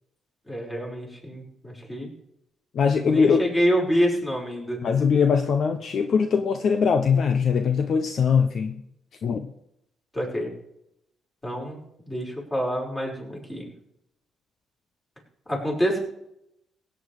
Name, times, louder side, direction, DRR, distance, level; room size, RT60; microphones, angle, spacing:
voice 1, 0.5-2.1 2.9-4.8 10.1-10.5 11.4-11.8 12.1-13.7 15.5-16.0, equal, 15° left, -2 dB, 5.5 m, -27 dB
voice 2, 2.7-3.5 4.8-8.8 9.2-9.5, left 6 dB, 60° left, 7 dB, 0.9 m, -21 dB
16.5 x 9.0 x 4.9 m, 0.77 s
cardioid pair, 90°, 0 cm